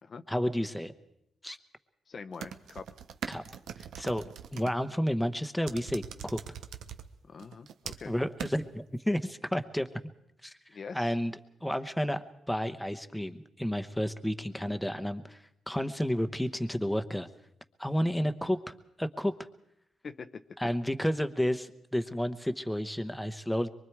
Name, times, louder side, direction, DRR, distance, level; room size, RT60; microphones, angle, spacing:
voice 1, 0.3-0.9 1.4-1.6 3.3-3.4 3.8-4.2 4.5-6.4 8.1-9.9 10.4-10.5 10.9-11.3 11.6-15.4 15.7-17.3 17.8-19.3 20.6-23.7, equal, 5° left, 9 dB, 1.0 m, -31 dB
voice 2, 2.1-2.9 7.2-8.1 10.7-11.1 20.0-20.7, left 5 dB, 45° left, 10 dB, 0.8 m, -44 dB
sound 1, 2.3-4.7 5.7-7.0 7.4-8.1 8.4-8.5, right 9 dB, 85° right, 1.0 m, -41 dB
24.0 x 23.5 x 4.7 m, 0.81 s
cardioid pair, 110°, 0 cm